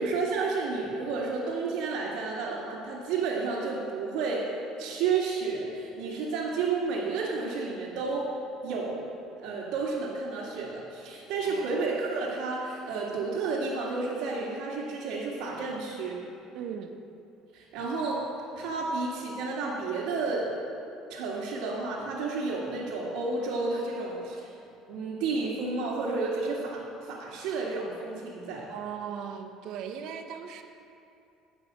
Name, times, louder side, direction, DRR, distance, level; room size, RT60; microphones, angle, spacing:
voice 1, 0.0-4.4 4.8-8.3 8.6-9.1 9.4-16.2 17.5-18.3 18.6-20.5 21.1-24.5 24.9-28.7, right 4 dB, 80° right, -9 dB, 2.2 m, -31 dB
voice 2, 11.4-11.9 16.5-16.9 28.7-30.6, right 8 dB, 60° right, 5 dB, 0.9 m, -38 dB
16.5 x 5.6 x 6.3 m, 2.7 s
cardioid pair, 140°, 0 cm